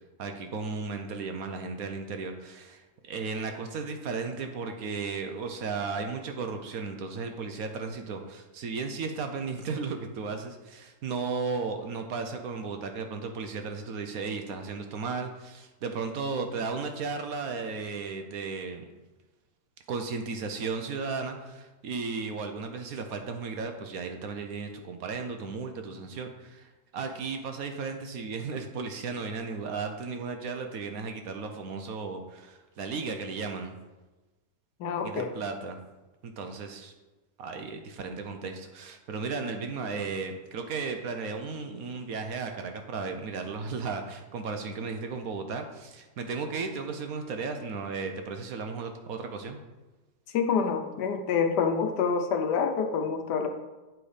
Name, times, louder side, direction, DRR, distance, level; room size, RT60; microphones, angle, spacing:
voice 1, 0.2-18.9 19.9-33.8 35.0-35.8 36.2-36.9 37.4-49.6, right 4 dB, 65° right, 5 dB, 1.1 m, -35 dB
voice 2, 34.8-35.3 50.3-53.5, left 6 dB, 75° left, 6 dB, 1.4 m, -27 dB
8.6 x 4.6 x 5.0 m, 1.1 s
omnidirectional pair, 1.8 m